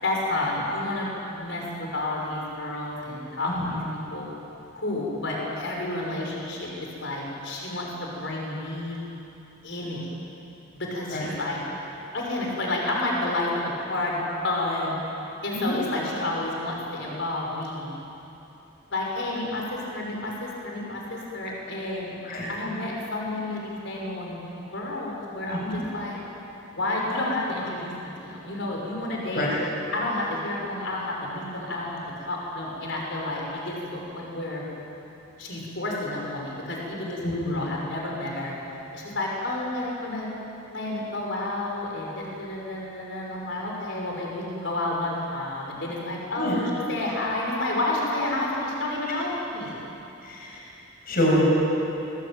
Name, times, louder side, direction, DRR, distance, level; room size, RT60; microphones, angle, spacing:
voice 1, 0.0-3.8 4.1-4.3 4.7-6.7 7.0-9.0 9.6-10.1 10.7-11.6 12.1-13.6 13.9-15.0 15.4-17.9 18.9-22.1 22.5-24.4 24.7-26.2 26.7-29.5 29.9-34.7 35.4-38.5 38.9-40.3 40.7-49.8, left 2 dB, 65° left, -2 dB, 6.1 m, -30 dB
voice 2, 25.5-25.8 29.3-29.5 37.2-37.6 46.4-46.6 50.2-50.6 51.1-51.5, equal, 50° left, -4 dB, 7.7 m, -25 dB
26.0 x 22.5 x 9.3 m, 3.0 s
head